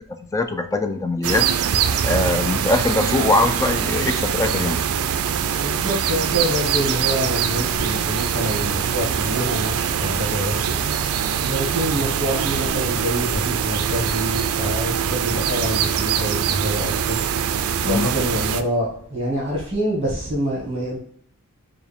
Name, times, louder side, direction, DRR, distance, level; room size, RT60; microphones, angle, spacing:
voice 1, 0.3-1.5 2.0-4.8 17.8-18.1, left 2 dB, 15° left, 0.3 m, -21 dB
sound 1, 1.2-18.6, right 8 dB, 80° right, 0.4 m, -23 dB
voice 2, 5.5-10.8 11.4-17.2 17.8-21.0, equal, 30° right, 1.4 m, -26 dB
4.6 x 2.2 x 3.4 m
head